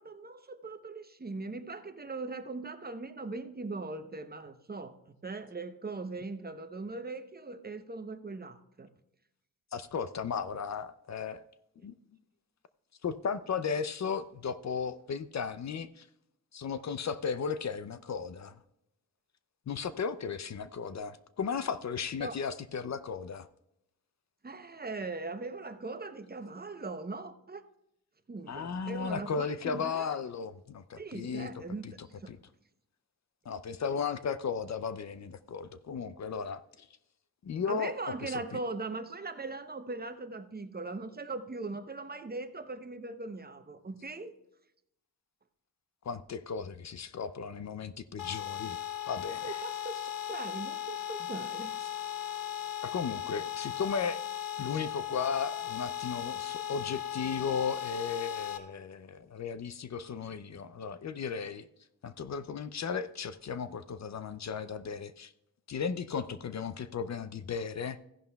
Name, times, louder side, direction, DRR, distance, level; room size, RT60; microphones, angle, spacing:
voice 1, 0.0-8.9 22.2-22.4 24.4-27.6 28.3-30.2 31.0-32.3 37.7-44.3 49.4-51.8, right 3 dB, 25° right, 0.8 m, -40 dB
voice 2, 9.7-11.4 11.8-11.9 13.0-16.1 16.5-18.5 19.7-23.5 28.5-32.4 33.5-36.9 37.4-38.6 46.0-48.8 49.1-49.6 52.8-54.2 54.6-61.6 62.0-65.3 65.7-68.0, left 6 dB, 50° left, 0.5 m, -35 dB
sound 1, 48.2-58.6, left 11 dB, 70° left, 1.0 m, -37 dB
15.0 x 11.0 x 2.3 m
cardioid pair, 75°, 36 cm